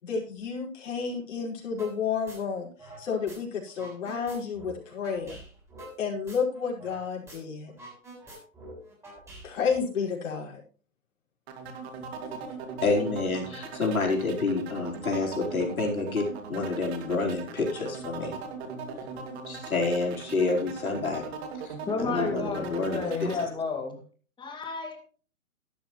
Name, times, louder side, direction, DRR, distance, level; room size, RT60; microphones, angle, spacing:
voice 1, 0.0-5.4 6.0-7.7 9.4-10.6, left 6 dB, 60° left, -2 dB, 5.6 m, -31 dB
sound 1, 1.8-2.0 2.3-3.4 3.7-7.0 7.3-7.4 7.7-9.8, right 1 dB, 5° right, 7.1 m, -46 dB
sound 2, 11.5-23.5, right 5 dB, 50° right, 2.6 m, -40 dB
voice 2, 12.8-18.4 19.5-21.3 21.6-23.5, left 3 dB, 90° left, 0 dB, 4.8 m, -28 dB
voice 3, 21.9-24.0 24.4-25.0, left 4 dB, 10° left, 3 dB, 2.3 m, -31 dB
12.5 x 12.5 x 3.2 m, 0.40 s
hypercardioid pair, 130°, 41 cm